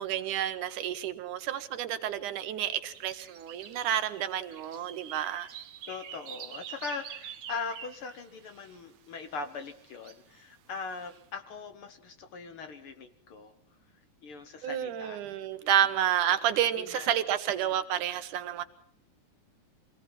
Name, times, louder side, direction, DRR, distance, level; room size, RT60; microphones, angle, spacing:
voice 1, 0.0-5.5 14.6-18.6, right 11 dB, 90° right, 11 dB, 2.7 m, -30 dB
sound 1, 2.9-8.8 9.6-10.4 10.9-11.2, right 9 dB, 65° right, 2.4 m, -46 dB
voice 2, 5.9-13.5 14.2-15.2 15.6-15.7 16.3-16.4 16.8-17.1 17.6-17.7, left 4 dB, 60° left, 8 dB, 1.6 m, -40 dB
24.5 x 18.0 x 6.0 m, 0.70 s
omnidirectional pair, 3.5 m